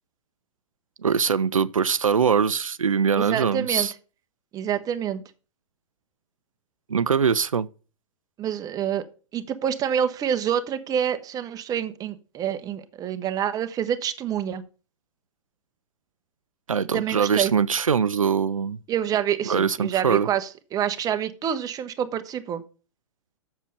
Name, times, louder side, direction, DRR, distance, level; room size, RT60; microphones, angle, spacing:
voice 1, 1.0-3.9 6.9-7.7 16.7-18.8 19.5-20.3, right 6 dB, 85° right, 0.5 m, -22 dB
voice 2, 3.2-3.9 4.5-5.2 8.4-9.0 9.3-14.6 16.9-17.5 18.9-22.6, right 9 dB, 20° right, 0.9 m, -27 dB
7.4 x 6.6 x 6.7 m
figure-of-eight pair, 110°, 17 cm